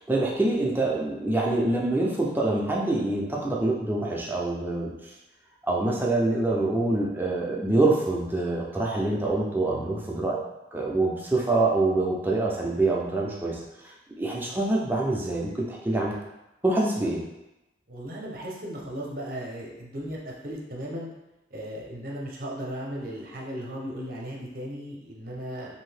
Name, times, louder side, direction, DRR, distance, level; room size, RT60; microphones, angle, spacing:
voice 1, 0.1-4.9 5.6-10.4 10.7-13.6 14.2-16.1 16.6-17.2, right 2 dB, 10° right, -3 dB, 0.4 m, -25 dB
voice 2, 17.9-21.1 21.5-25.8, equal, 50° right, -3 dB, 0.7 m, -36 dB
2.7 x 2.7 x 3.3 m, 0.96 s
head